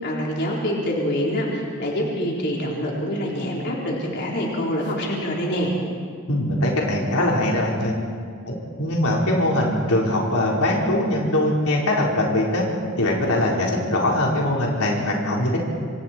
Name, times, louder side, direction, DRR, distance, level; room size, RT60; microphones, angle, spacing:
voice 1, 0.0-5.7, equal, 55° left, -3 dB, 4.0 m, -25 dB
voice 2, 6.3-7.9 8.4-12.6 13.0-15.6, left 1 dB, 85° left, -3 dB, 4.3 m, -22 dB
26.0 x 26.0 x 4.5 m, 2.2 s
head